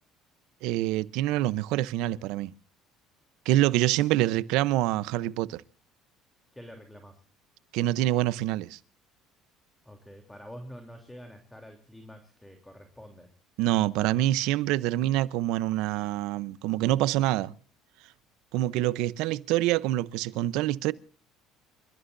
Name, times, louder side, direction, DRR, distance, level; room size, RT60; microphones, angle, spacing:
voice 1, 0.6-2.5 3.5-5.6 7.7-8.8 13.6-17.5 18.5-20.9, right 15 dB, 80° right, 0.8 m, -26 dB
voice 2, 6.5-7.2 9.8-13.3, equal, 5° left, 3.4 m, -47 dB
28.5 x 14.5 x 2.7 m
supercardioid pair, 95°, 0 cm